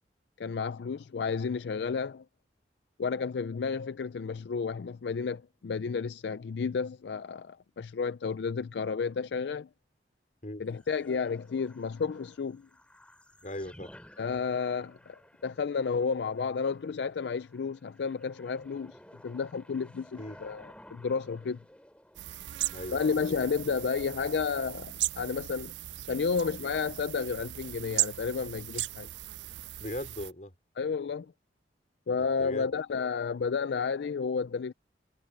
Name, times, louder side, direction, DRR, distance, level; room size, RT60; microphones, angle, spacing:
voice 1, 0.4-2.2 3.0-9.7 10.6-12.7 14.2-19.0 19.2-21.6 22.9-25.7 26.1-29.1 30.8-31.3 32.1-34.7, left 5 dB, 70° left, 0.4 m, -32 dB
sound 1, 10.6-24.2, left 1 dB, 5° left, 4.5 m, -56 dB
voice 2, 13.4-13.9 20.2-20.4 22.7-23.0 29.8-30.5 32.4-32.7, left 1 dB, 45° left, 4.3 m, -38 dB
sound 2, 22.1-30.3, right 14 dB, 85° right, 0.4 m, -37 dB
head